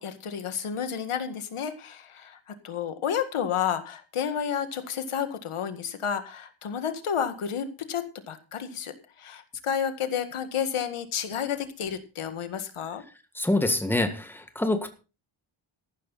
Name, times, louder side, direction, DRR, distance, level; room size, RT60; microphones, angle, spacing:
voice 1, 0.0-13.0, left 8 dB, 90° left, 9 dB, 2.0 m, -31 dB
voice 2, 13.3-14.9, left 1 dB, 5° left, 7 dB, 1.7 m, -26 dB
14.5 x 12.5 x 4.2 m, 0.32 s
wide cardioid pair, 175°, 49 cm